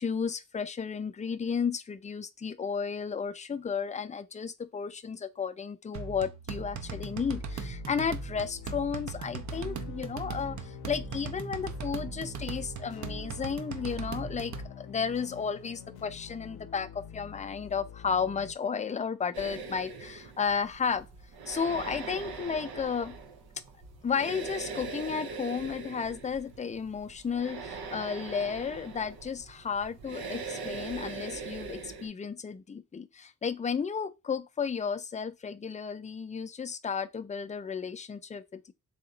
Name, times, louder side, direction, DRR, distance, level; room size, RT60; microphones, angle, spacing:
voice 1, 0.0-21.1 21.5-23.2 24.0-38.7, left 6 dB, 20° left, 0.4 m, -33 dB
sound 1, 5.9-14.7, right 5 dB, 50° right, 0.6 m, -39 dB
sound 2, 6.7-18.6, left 8 dB, 85° left, 0.6 m, -47 dB
sound 3, 19.3-32.1, right 4 dB, 85° right, 0.8 m, -41 dB
3.4 x 2.9 x 3.8 m
cardioid pair, 75°, 36 cm